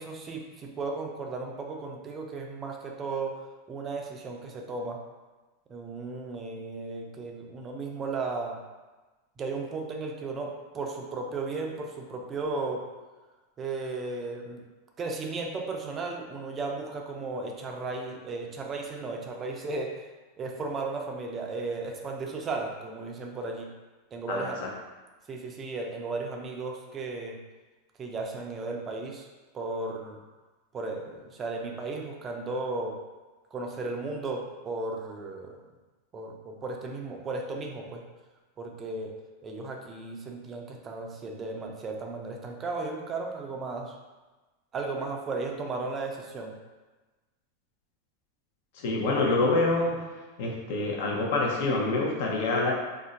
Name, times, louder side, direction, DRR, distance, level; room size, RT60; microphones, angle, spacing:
voice 1, 0.0-3.3 3.7-5.0 5.7-8.6 9.4-12.8 13.6-14.6 15.0-20.1 20.4-23.7 24.1-24.6 25.3-27.4 28.0-29.3 29.5-30.2 30.7-33.0 33.5-35.6 36.1-38.0 38.6-39.1 39.4-44.0 44.7-46.5, right 3 dB, 25° right, 2 dB, 0.4 m, -35 dB
voice 2, 24.3-24.7 48.7-50.1 50.4-52.7, left 2 dB, 70° left, -1 dB, 0.7 m, -26 dB
2.5 x 2.1 x 3.7 m, 1.2 s
supercardioid pair, 135°, 0 cm